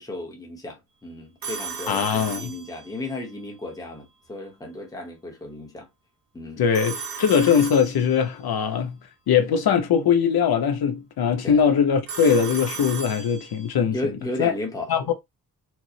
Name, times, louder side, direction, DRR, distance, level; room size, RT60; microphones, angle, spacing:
voice 1, 0.0-5.9 6.3-6.6 11.4-11.6 13.9-15.1, left 1 dB, 10° left, 0.8 m, -34 dB
Telephone, 1.4-3.2 6.7-8.4 12.1-13.8, right 5 dB, 65° right, 1.1 m, -35 dB
voice 2, 1.9-2.5 6.6-9.0 9.3-14.0 14.4-14.5 14.9-15.1, left 7 dB, 75° left, 0.8 m, -21 dB
4.6 x 2.0 x 2.7 m
wide cardioid pair, 170°, 37 cm